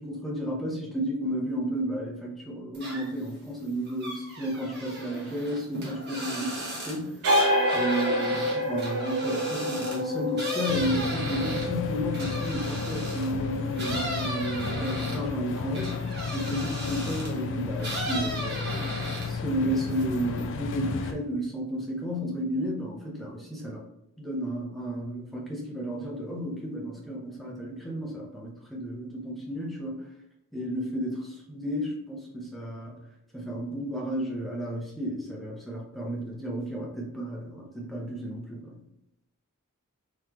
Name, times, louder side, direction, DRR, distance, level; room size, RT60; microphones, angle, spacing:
voice 1, 0.0-7.2 7.7-18.8 19.2-23.8 24.2-30.1 30.5-33.0 33.3-38.8, equal, ahead, -3 dB, 0.9 m, -32 dB
sound 1, 2.7-3.3 3.6-13.3 13.8-17.4 17.8-19.5 19.8-20.4, right 1 dB, 50° right, 1.2 m, -36 dB
sound 2, 7.2-14.4, equal, 75° right, 0.8 m, -29 dB
sound 3, 10.7-21.1, left 5 dB, 60° left, 0.4 m, -33 dB
4.0 x 3.3 x 3.0 m, 0.83 s
head